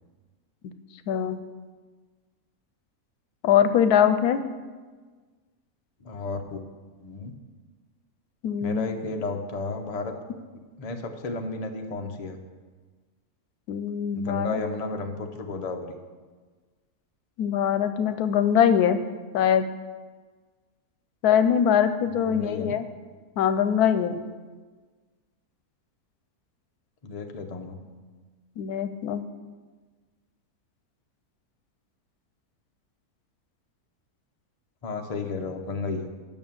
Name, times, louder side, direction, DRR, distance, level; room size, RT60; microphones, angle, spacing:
voice 1, 1.1-1.4 3.4-4.4 8.4-8.9 13.7-14.6 17.4-19.0 19.3-19.7 21.2-22.9 23.4-24.2 28.6-29.2, left 8 dB, 85° left, 11 dB, 1.1 m, -22 dB
voice 2, 6.0-6.6 7.0-7.3 8.6-10.1 10.8-12.4 14.1-16.0 22.2-22.8 27.0-27.8 34.8-36.1, left 3 dB, 35° left, 4 dB, 0.6 m, -33 dB
8.6 x 6.1 x 7.2 m, 1.4 s
omnidirectional pair, 1.6 m